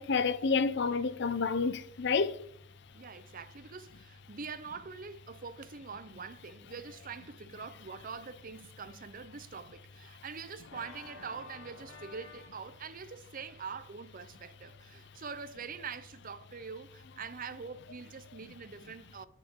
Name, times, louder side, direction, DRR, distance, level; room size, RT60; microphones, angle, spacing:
voice 1, 0.0-2.4, left 5 dB, 60° left, 0.6 m, -29 dB
voice 2, 2.9-19.3, right 5 dB, 45° right, 0.7 m, -44 dB
Organ, 10.6-15.5, left 3 dB, 75° left, 2.5 m, -54 dB
18.0 x 6.8 x 3.7 m
head